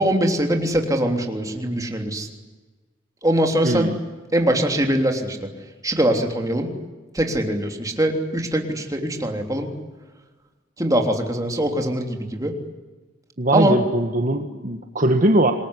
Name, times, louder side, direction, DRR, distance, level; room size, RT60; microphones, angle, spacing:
voice 1, 0.0-2.3 3.2-3.9 4.3-5.4 5.8-6.7 7.1-9.7 10.8-12.6 13.5-13.8, right 1 dB, 15° right, 3 dB, 3.3 m, -22 dB
voice 2, 3.6-4.0 13.4-15.5, right 1 dB, 40° right, 5 dB, 1.6 m, -20 dB
26.5 x 21.5 x 9.9 m, 1.3 s
head